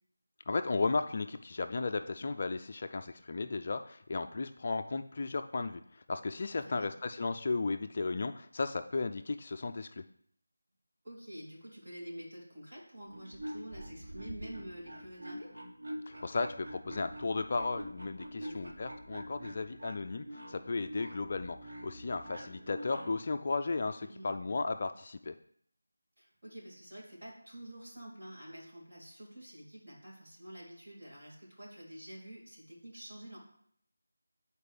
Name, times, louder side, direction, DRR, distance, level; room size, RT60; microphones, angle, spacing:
voice 1, 0.5-10.0 16.1-25.3, left 3 dB, 30° left, 7 dB, 0.3 m, -35 dB
voice 2, 11.0-15.6 18.4-18.8 24.0-24.3 26.2-33.4, right 1 dB, 40° right, -6 dB, 3.4 m, -48 dB
sound 1, 13.0-23.3, equal, 80° right, 1.5 m, -46 dB
9.9 x 4.4 x 3.4 m, 0.64 s
figure-of-eight pair, 175°, 0 cm